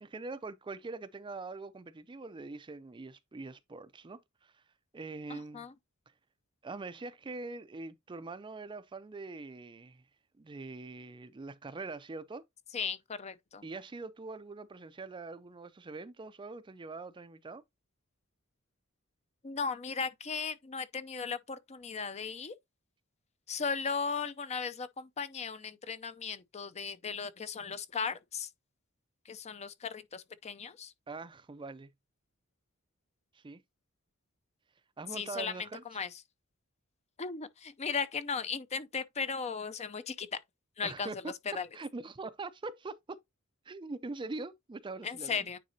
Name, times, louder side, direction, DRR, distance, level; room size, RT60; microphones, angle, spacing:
voice 1, 0.0-4.6 4.9-5.7 6.6-10.0 10.4-12.4 13.6-17.6 31.1-31.9 33.3-33.6 35.0-35.8 40.8-41.3 41.7-43.2 43.7-45.4, right 3 dB, 20° right, 0.4 m, -43 dB
voice 2, 5.3-5.7 12.7-13.6 19.4-22.5 23.5-28.5 29.3-30.9 35.1-36.1 37.2-40.4 40.8-41.7 45.0-45.6, left 5 dB, 30° left, 0.5 m, -37 dB
9.4 x 3.9 x 2.7 m
head